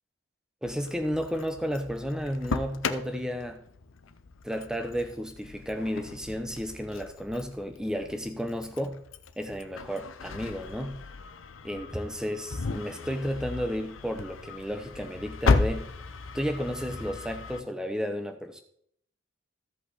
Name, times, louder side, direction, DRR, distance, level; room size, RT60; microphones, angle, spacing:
Engine starting, 0.6-17.6, left 4 dB, 85° left, 0.6 m, -35 dB
voice 1, 0.6-3.6 4.4-9.0 9.4-11.0 11.6-15.9 16.3-18.6, equal, 5° right, 6 dB, 0.8 m, -32 dB
14.5 x 5.4 x 4.1 m, 0.67 s
head